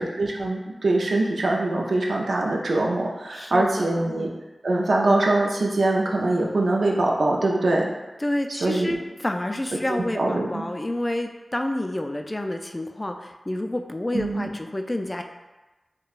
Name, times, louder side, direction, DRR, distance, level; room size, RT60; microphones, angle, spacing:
voice 1, 0.0-4.3 4.6-7.9 8.5-8.9 9.9-10.6 14.1-14.5, right 2 dB, 85° right, -1 dB, 0.5 m, -23 dB
voice 2, 3.3-4.2 8.2-15.2, left 1 dB, 25° left, 5 dB, 0.3 m, -29 dB
5.1 x 2.2 x 2.4 m, 1.1 s
cardioid pair, 50°, 0 cm